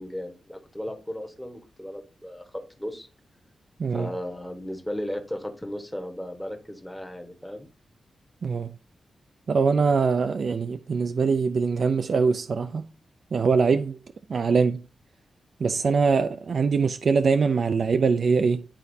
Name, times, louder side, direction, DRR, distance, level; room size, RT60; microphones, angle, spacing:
voice 1, 0.0-3.1 3.9-7.7, equal, 5° left, 1.2 m, -35 dB
voice 2, 8.4-8.7 9.5-12.9 13.3-14.0 14.3-14.8 15.6-18.7, right 5 dB, 50° right, 0.3 m, -23 dB
11.0 x 4.1 x 2.7 m
wide cardioid pair, 140°, 0 cm